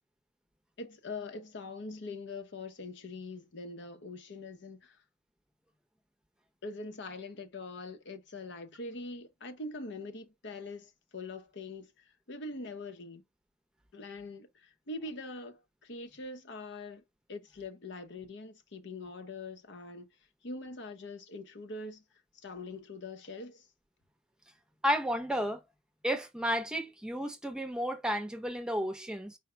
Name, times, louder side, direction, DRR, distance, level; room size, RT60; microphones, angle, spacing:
voice 1, 0.8-5.0 6.6-13.2 13.9-17.0 17.3-20.1 20.4-22.0 22.3-23.7, left 2 dB, 65° left, 0.8 m, -43 dB
voice 2, 24.8-25.6 26.0-29.4, equal, 5° right, 0.7 m, -32 dB
4.9 x 2.2 x 4.3 m
head